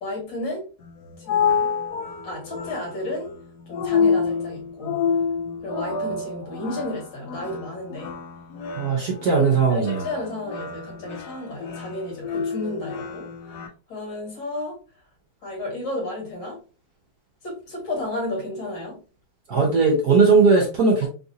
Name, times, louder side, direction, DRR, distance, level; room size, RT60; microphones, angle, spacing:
voice 1, 0.0-0.7 1.3-1.7 2.2-3.3 3.7-5.0 5.6-8.1 9.7-13.3 13.9-14.8 15.4-16.6 17.4-19.0, left 2 dB, 60° left, -1 dB, 2.2 m, -32 dB
sound 1, 0.8-13.7, left 5 dB, 80° left, 0.9 m, -28 dB
voice 2, 8.8-10.1 19.5-21.1, right 4 dB, 60° right, 0 dB, 1.1 m, -18 dB
3.9 x 2.5 x 2.7 m, 0.36 s
omnidirectional pair, 2.3 m